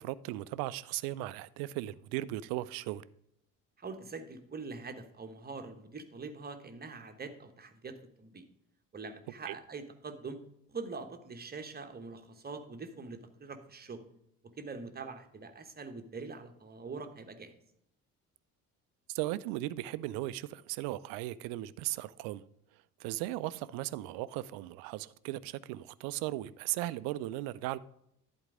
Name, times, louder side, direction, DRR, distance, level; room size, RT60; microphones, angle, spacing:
voice 1, 0.0-3.0 9.5-9.6 19.1-22.4 23.0-27.8, right 16 dB, 50° right, 0.5 m, -37 dB
voice 2, 3.8-8.5 8.9-10.4 10.7-14.0 14.6-17.5, right 4 dB, 20° right, 1.1 m, -44 dB
11.0 x 4.6 x 4.9 m
figure-of-eight pair, 55°, 46 cm